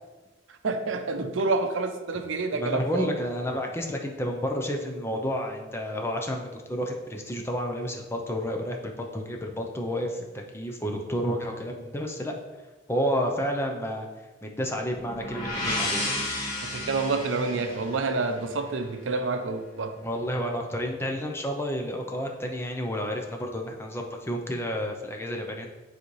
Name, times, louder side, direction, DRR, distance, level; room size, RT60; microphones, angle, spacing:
voice 1, 0.6-3.1 16.6-19.9, right 3 dB, 80° right, 7 dB, 0.6 m, -28 dB
voice 2, 2.5-12.3 12.9-14.1 14.4-16.0 20.0-25.7, equal, 15° left, 2 dB, 0.6 m, -30 dB
sound 1, 14.9-18.8, left 1 dB, 45° left, 2.1 m, -32 dB
9.6 x 4.0 x 3.2 m, 1.2 s
head